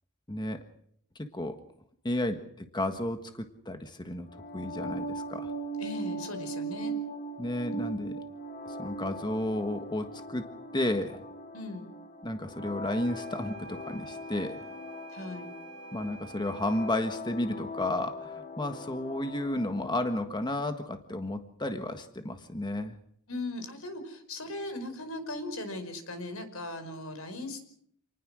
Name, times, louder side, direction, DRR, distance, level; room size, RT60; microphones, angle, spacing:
voice 1, 0.3-0.6 1.2-1.6 2.0-4.3 4.5-5.5 7.4-8.2 8.7-10.5 10.7-11.2 12.2-14.6 15.9-22.9, left 1 dB, 20° left, 7 dB, 1.5 m, -32 dB
sound 1, 4.3-20.2, right 1 dB, 40° left, 1.7 m, -40 dB
voice 2, 5.8-6.9 11.5-11.9 15.1-15.5 23.3-27.6, left 2 dB, 85° left, 8 dB, 5.2 m, -38 dB
sound 2, 12.8-17.1, right 5 dB, 75° right, 6.7 m, -48 dB
28.5 x 19.5 x 6.3 m, 0.68 s
head